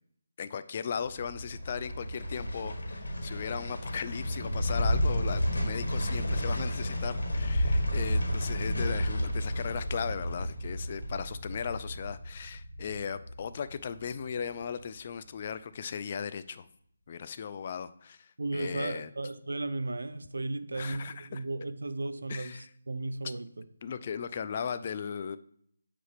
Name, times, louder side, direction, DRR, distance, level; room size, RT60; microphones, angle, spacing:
voice 1, 0.4-16.7 17.1-19.1 20.7-21.4 22.3-22.7 23.8-25.4, left 7 dB, 35° left, 13 dB, 0.4 m, -37 dB
sound 1, 1.0-14.2 14.5-14.6, equal, 80° left, 2.0 m, -31 dB
voice 2, 18.4-23.6, right 2 dB, 85° right, 12 dB, 0.6 m, -35 dB
7.3 x 5.0 x 5.0 m, 0.66 s
figure-of-eight pair, 165°, 0 cm